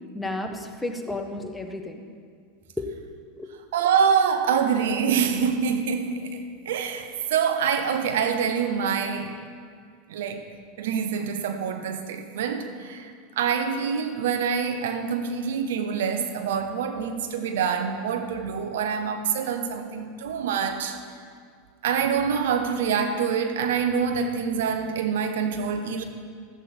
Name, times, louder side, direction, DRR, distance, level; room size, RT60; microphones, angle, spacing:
voice 1, 0.1-2.1 2.8-2.9 3.4-3.5, left 2 dB, 10° left, 4 dB, 1.2 m, -32 dB
voice 2, 3.7-9.4 10.1-10.4 10.8-21.0 21.8-26.0, right 6 dB, 70° right, 7 dB, 0.9 m, -26 dB
14.0 x 8.1 x 4.4 m, 2.1 s
hypercardioid pair, 90°, 0 cm